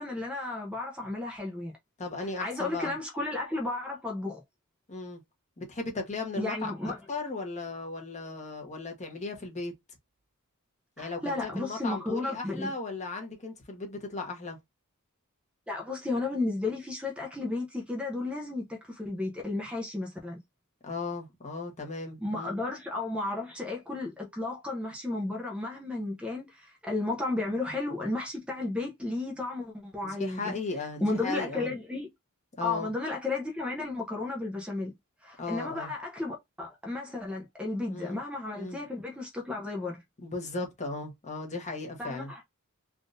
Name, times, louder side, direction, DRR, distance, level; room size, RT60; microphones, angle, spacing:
voice 1, 0.0-1.8 2.2-4.4 6.4-7.0 11.0-12.7 15.7-20.4 22.2-30.6 31.0-32.1 32.6-34.9 35.2-40.0 42.0-42.4, left 2 dB, 5° right, 0.6 m, -33 dB
voice 2, 2.0-3.0 4.9-5.2 5.6-9.7 11.0-14.6 20.8-22.6 30.0-31.7 32.6-32.9 35.4-35.9 37.9-38.2 38.5-38.8 40.2-42.3, left 3 dB, 30° left, 1.1 m, -36 dB
3.6 x 2.5 x 2.6 m
head